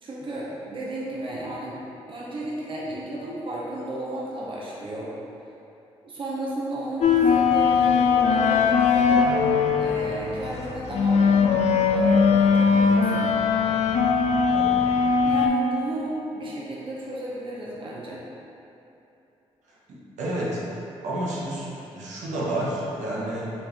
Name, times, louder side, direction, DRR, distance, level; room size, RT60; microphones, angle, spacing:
voice 1, 0.0-1.8 2.1-5.1 6.0-9.2 9.7-13.3 15.2-18.2, right 1 dB, 45° right, -5 dB, 0.8 m, -33 dB
sound 1, 7.0-15.5, left 5 dB, 65° left, 0.4 m, -20 dB
voice 2, 14.5-14.9 19.9-20.7 21.0-23.5, right 1 dB, 75° right, -6 dB, 0.9 m, -30 dB
4.3 x 3.4 x 2.9 m, 2.9 s
supercardioid pair, 60°, 12 cm